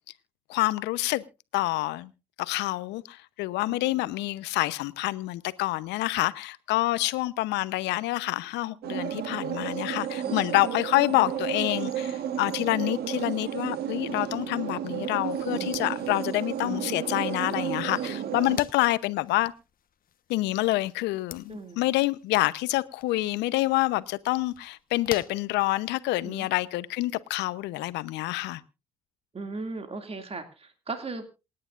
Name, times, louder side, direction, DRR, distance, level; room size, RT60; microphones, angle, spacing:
voice 1, 0.5-1.2 1.5-2.1 2.4-19.5 20.3-28.6, left 18 dB, 75° left, 0.9 m, -27 dB
sound 1, 8.8-18.6, right 9 dB, 60° right, 1.5 m, -32 dB
voice 2, 10.2-10.6 21.5-21.8 26.2-26.5 29.3-31.2, right 3 dB, 35° right, 2.4 m, -37 dB
sound 2, 15.6-26.2, left 9 dB, 55° left, 1.2 m, -48 dB
27.5 x 9.8 x 2.5 m
hypercardioid pair, 50°, 18 cm